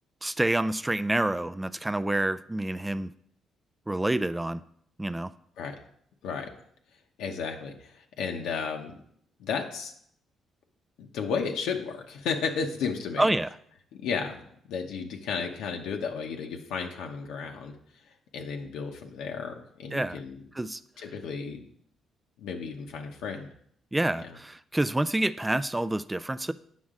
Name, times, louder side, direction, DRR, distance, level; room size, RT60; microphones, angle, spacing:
voice 1, 0.2-3.1 3.9-4.6 5.0-5.3 13.2-13.5 19.9-20.2 20.6-20.8 23.9-26.5, right 1 dB, 10° right, 14 dB, 0.3 m, -27 dB
voice 2, 7.2-9.0 9.4-9.9 11.0-13.3 14.0-17.7 18.3-20.4 21.0-21.6 22.4-23.5 24.2-24.4, left 5 dB, 90° left, 2 dB, 0.9 m, -33 dB
8.3 x 6.1 x 3.7 m, 0.67 s
cardioid pair, 90°, 0 cm